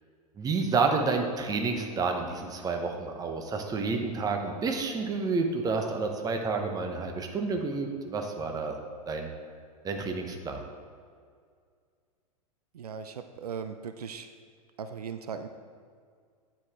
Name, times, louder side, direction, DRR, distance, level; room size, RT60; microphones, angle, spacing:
voice 1, 0.4-8.7 9.1-9.3 9.8-10.6, right 4 dB, 20° right, 4 dB, 0.8 m, -29 dB
voice 2, 12.7-14.3 14.8-15.5, right 6 dB, 80° right, 9 dB, 0.4 m, -38 dB
9.5 x 4.9 x 3.5 m, 2.1 s
figure-of-eight pair, 100°, 20 cm